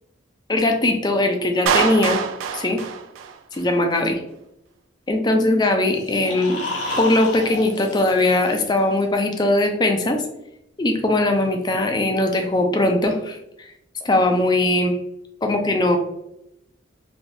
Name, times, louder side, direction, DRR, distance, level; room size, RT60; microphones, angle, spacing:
voice 1, 0.5-2.2 2.5-2.8 3.5-4.2 5.1-6.6 7.0-10.2 10.8-13.7 14.0-15.0 15.4-16.0, left 2 dB, 20° left, 4 dB, 0.4 m, -20 dB
Clapping, 1.7-3.7, right 6 dB, 85° right, 0.3 m, -24 dB
sound 1, 5.9-9.0, left 2 dB, 65° left, 1.0 m, -32 dB
3.2 x 2.6 x 2.6 m, 0.83 s
head